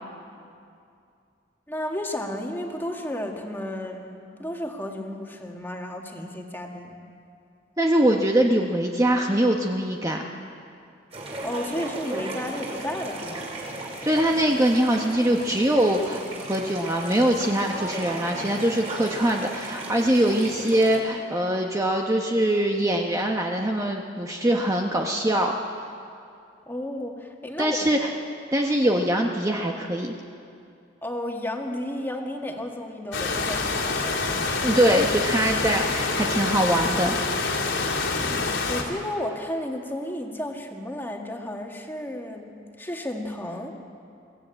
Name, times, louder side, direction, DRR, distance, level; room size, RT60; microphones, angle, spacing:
voice 1, 1.7-7.0 11.4-13.5 26.7-27.8 31.0-34.0 38.2-43.7, left 1 dB, 10° left, 1 dB, 1.9 m, -33 dB
voice 2, 7.8-10.2 13.8-25.5 27.6-28.1 28.5-30.1 34.6-37.2, right 1 dB, 15° right, 1 dB, 1.0 m, -23 dB
sound 1, 11.1-21.0, right 2 dB, 35° right, 4.3 m, -36 dB
sound 2, 33.1-38.8, left 3 dB, 85° left, 3.4 m, -26 dB
23.0 x 15.5 x 9.0 m, 2.5 s
head